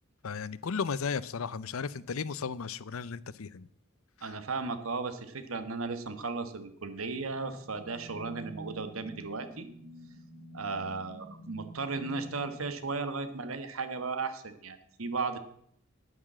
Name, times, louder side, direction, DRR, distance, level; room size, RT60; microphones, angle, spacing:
voice 1, 0.2-3.7, left 5 dB, 85° left, 18 dB, 0.6 m, -35 dB
voice 2, 4.2-9.7 10.5-15.4, right 4 dB, 85° right, 10 dB, 1.3 m, -35 dB
sound 1, 7.2-13.5, right 1 dB, 20° right, 2.8 m, -49 dB
9.8 x 9.5 x 7.3 m, 0.69 s
head